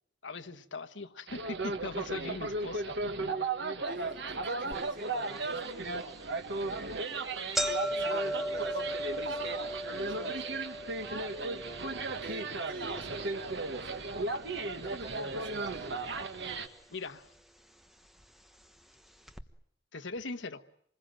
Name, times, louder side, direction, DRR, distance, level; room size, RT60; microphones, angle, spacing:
voice 1, 0.2-2.9 16.9-17.3 19.9-20.6, left 3 dB, 75° left, 8 dB, 1.3 m, -40 dB
sound 1, 1.3-16.7, right 3 dB, 70° right, 1.8 m, -35 dB
voice 2, 3.8-6.1 6.5-7.0 7.7-10.6 11.9-14.0 14.8-16.1, right 3 dB, 50° right, 0 dB, 6.1 m, -46 dB
sound 2, 4.7-4.8 5.4-5.5 6.3-6.5 6.8-6.9 7.2-15.4 15.6-16.4 17.2-17.3 18.2-18.3 18.6-18.7 19.3-19.4, equal, ahead, 1.2 m, -38 dB
26.5 x 21.0 x 9.0 m, 0.66 s
head